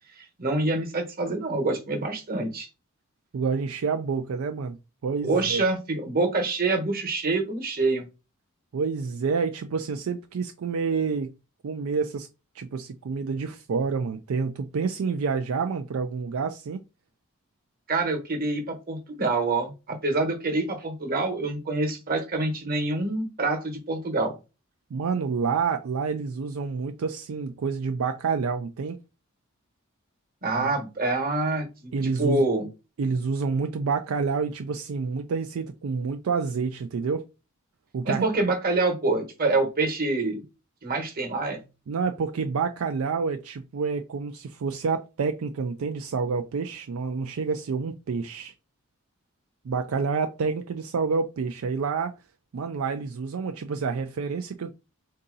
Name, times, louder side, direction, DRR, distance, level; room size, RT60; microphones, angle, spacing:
voice 1, 0.4-2.7 5.2-8.0 17.9-24.3 30.4-32.7 38.1-40.4 40.8-41.6, right 2 dB, 45° right, 1.2 m, -26 dB
voice 2, 3.3-4.8 5.0-5.6 8.7-11.3 11.6-12.3 12.6-16.8 24.9-29.0 30.6-30.7 31.9-32.4 33.0-37.2 37.9-38.2 41.9-48.5 49.6-52.1 52.5-54.7, right 5 dB, 75° right, 0.4 m, -28 dB
3.8 x 2.7 x 3.8 m
head